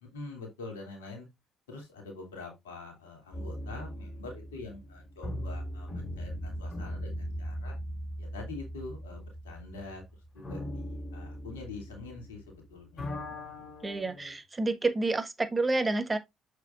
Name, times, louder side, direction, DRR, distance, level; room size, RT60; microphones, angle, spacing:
voice 1, 0.0-1.3 1.7-7.8 8.2-10.0 10.3-13.1 14.2-14.3, left 3 dB, 90° left, 2.6 m, -45 dB
sound 1, 3.3-12.6 12.8-14.3, equal, 45° left, 3.8 m, -39 dB
voice 2, 13.8-16.2, right 2 dB, 25° right, 1.4 m, -29 dB
7.2 x 6.3 x 2.5 m
hypercardioid pair, 50°, 0 cm